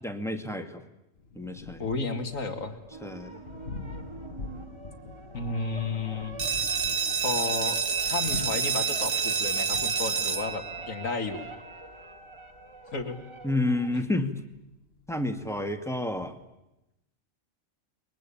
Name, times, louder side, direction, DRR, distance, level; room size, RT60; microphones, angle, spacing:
voice 1, 0.0-0.8 1.4-1.8 3.0-3.4 13.4-14.4 15.1-16.4, left 2 dB, ahead, 6 dB, 2.0 m, -30 dB
Thunder, 1.1-16.4, left 3 dB, 50° left, 1.8 m, -46 dB
voice 2, 1.8-2.8 5.3-6.4 7.2-7.8 8.1-11.4 12.9-13.2, left 3 dB, 85° left, 7 dB, 2.6 m, -32 dB
sound 1, 2.9-13.9, right 3 dB, 20° right, 2.7 m, -46 dB
sound 2, 6.4-11.8, right 6 dB, 70° right, 1.8 m, -29 dB
29.5 x 22.0 x 8.7 m, 0.91 s
omnidirectional pair, 1.4 m